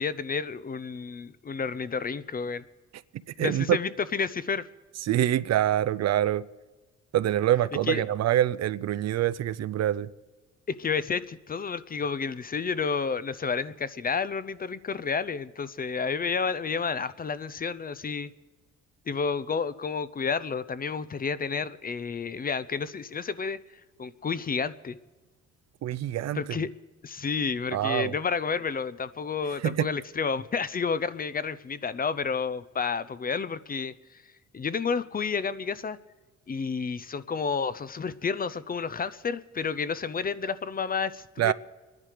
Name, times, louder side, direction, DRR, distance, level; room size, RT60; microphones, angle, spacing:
voice 1, 0.0-2.6 3.4-4.6 7.9-8.0 10.7-18.3 19.1-23.6 24.0-25.0 26.3-26.7 27.0-33.9 34.5-36.0 36.5-41.5, left 5 dB, 30° left, 0.5 m, -30 dB
voice 2, 3.4-3.8 5.0-6.5 7.1-10.1 25.8-26.7 27.7-28.1 29.6-29.9 41.4-41.5, right 12 dB, 60° right, 0.5 m, -25 dB
24.5 x 10.5 x 5.0 m
cardioid pair, 90°, 30 cm